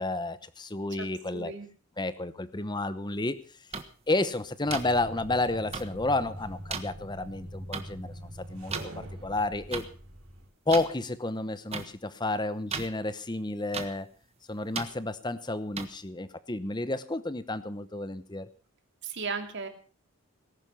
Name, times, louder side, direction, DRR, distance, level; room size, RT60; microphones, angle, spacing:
voice 1, 0.0-1.5 2.0-3.4 4.1-8.1 8.5-9.8 10.7-14.1 14.5-18.5, left 2 dB, 20° left, 14 dB, 0.9 m, -31 dB
voice 2, 1.3-1.7 19.0-19.7, right 4 dB, 55° right, 6 dB, 2.6 m, -35 dB
sound 1, 3.7-3.8 4.7-4.8 5.7-5.8 6.7-6.8 7.7-7.8 8.7-8.9 9.7-9.8 10.7-10.9 11.7-11.8 12.7-12.9 13.7-13.9 14.7-14.9 15.8-15.9, right 5 dB, 30° right, 1.4 m, -33 dB
sound 2, 4.6-10.5, equal, 80° right, 3.7 m, -43 dB
19.0 x 11.0 x 5.6 m, 0.40 s
head